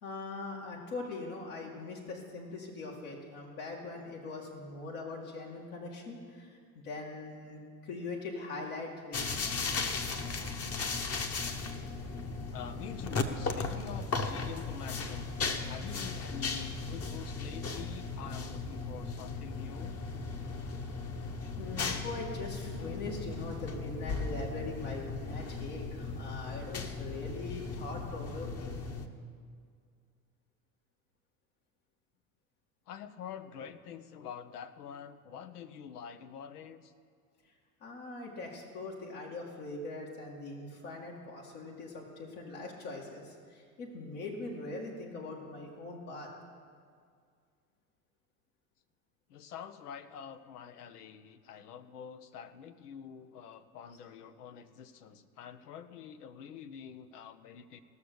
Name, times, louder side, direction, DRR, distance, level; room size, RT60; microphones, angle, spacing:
voice 1, 0.0-9.5 21.6-28.8 37.8-46.3, left 3 dB, 70° left, -3 dB, 2.4 m, -42 dB
sound 1, 9.1-29.1, left 4 dB, 30° left, 1.1 m, -37 dB
voice 2, 12.5-15.4 15.7-20.0 32.9-36.9 49.3-57.8, left 8 dB, 90° left, 11 dB, 0.8 m, -46 dB
17.5 x 6.5 x 6.9 m, 2.1 s
hypercardioid pair, 85°, 45 cm